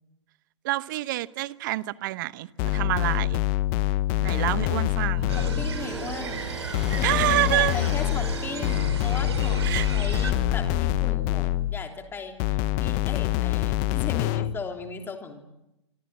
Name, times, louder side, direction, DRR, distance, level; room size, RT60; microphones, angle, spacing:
voice 1, 0.6-3.4 4.2-5.3 7.0-7.7 9.6-9.9, right 17 dB, 45° right, 1.0 m, -27 dB
sound 1, 2.6-5.8 6.7-11.9 12.4-14.6, left 16 dB, 35° left, 1.0 m, -25 dB
sound 2, 5.1-11.1, left 1 dB, 5° right, 7.5 m, -36 dB
voice 2, 5.3-6.5 6.9-15.4, left 5 dB, 15° left, 3.3 m, -37 dB
sound 3, 5.3-10.3, right 6 dB, 65° right, 5.2 m, -35 dB
27.0 x 25.0 x 7.6 m
figure-of-eight pair, 110°, 15 cm